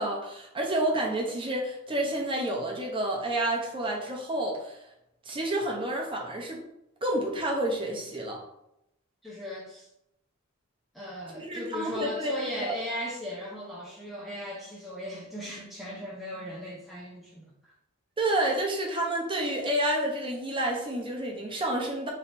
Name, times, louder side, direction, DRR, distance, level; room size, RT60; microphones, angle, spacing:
voice 1, 0.0-4.8 5.3-6.6 7.0-8.4 11.3-12.3 12.6-12.7 18.2-22.1, right 1 dB, 25° right, -1 dB, 0.8 m, -29 dB
voice 2, 9.2-9.9 10.9-17.7, left 1 dB, ahead, -6 dB, 0.6 m, -37 dB
3.2 x 2.8 x 4.2 m, 0.82 s
head